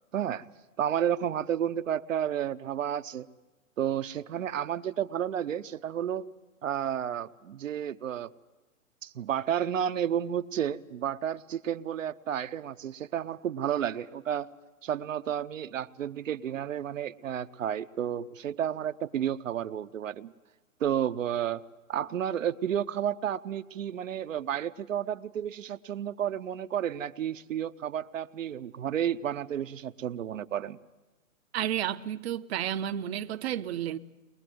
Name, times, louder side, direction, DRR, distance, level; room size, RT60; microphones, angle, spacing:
voice 1, 0.1-0.4 0.8-3.3 3.8-6.3 6.6-8.3 9.0-14.5 14.8-20.3 20.8-21.6 21.9-30.8, right 9 dB, 70° right, 0.9 m, -31 dB
voice 2, 31.5-34.0, right 11 dB, 50° right, 0.8 m, -31 dB
22.0 x 21.5 x 7.8 m
hypercardioid pair, 135°, 41 cm